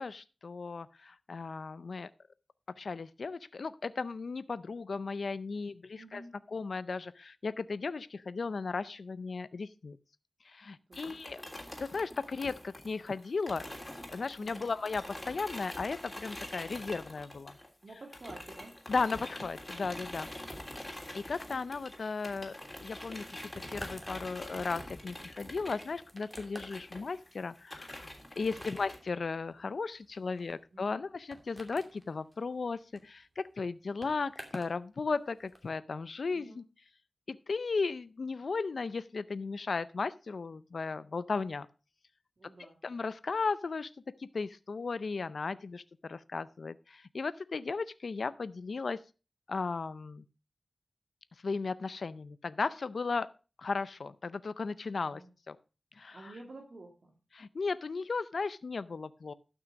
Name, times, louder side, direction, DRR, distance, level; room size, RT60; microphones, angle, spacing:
voice 1, 0.0-2.1 2.8-6.2 6.5-10.0 10.4-11.4 11.8-13.6 14.1-17.5 18.9-20.3 21.1-22.5 22.8-36.6 37.3-41.7 42.6-43.9 44.2-49.0 49.5-50.2 51.4-53.3 53.6-55.2 55.5-55.6 56.0-56.3 57.3-59.3, left 4 dB, 70° left, 15 dB, 0.5 m, -36 dB
voice 2, 6.0-6.3 10.9-11.1 14.4-14.7 17.8-18.7 30.7-31.0 36.3-36.6 42.4-42.8 55.1-55.3 56.1-57.2, right 2 dB, 60° right, 1 dB, 2.1 m, -50 dB
sound 1, 10.9-17.8 18.1-29.0, left 1 dB, 20° left, 3.2 m, -45 dB
sound 2, 21.5-34.8 35.1-35.7, equal, 15° right, 2.5 m, -52 dB
12.0 x 6.1 x 5.0 m, 0.32 s
wide cardioid pair, 80°, 0 cm